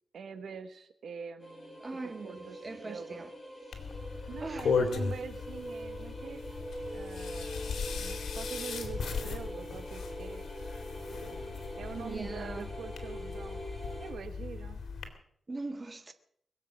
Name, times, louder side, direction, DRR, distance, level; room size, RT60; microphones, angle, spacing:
voice 1, 0.1-1.8 2.2-2.6 2.8-3.2 4.3-6.4 6.9-10.5 11.8-13.6 14.0-14.8, right 6 dB, 85° right, 1.2 m, -44 dB
sound 1, 1.4-14.1, equal, 20° left, 6.4 m, -43 dB
voice 2, 1.8-3.3 4.4-4.7 12.0-12.7 15.5-16.1, right 3 dB, 30° right, 1.5 m, -41 dB
sound 2, 3.7-15.1, left 5 dB, 85° left, 2.4 m, -37 dB
22.0 x 7.5 x 7.5 m
wide cardioid pair, 115°, 0 cm